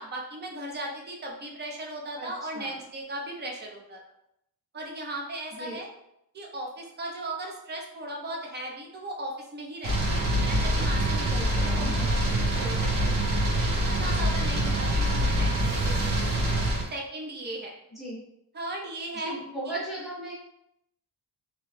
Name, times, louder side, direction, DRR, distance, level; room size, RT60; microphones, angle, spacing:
voice 1, 0.0-4.0 4.7-5.9 6.3-16.3 16.9-17.8 18.5-19.3 19.7-19.8, right 1 dB, 25° right, -1 dB, 0.5 m, -37 dB
voice 2, 2.2-2.8 5.5-5.8 11.3-12.1 17.9-18.2 19.2-20.3, right 1 dB, ahead, -8 dB, 1.0 m, -37 dB
sound 1, 9.8-16.9, right 1 dB, 55° right, 0.9 m, -25 dB
2.8 x 2.2 x 3.1 m, 0.80 s
wide cardioid pair, 160°, 39 cm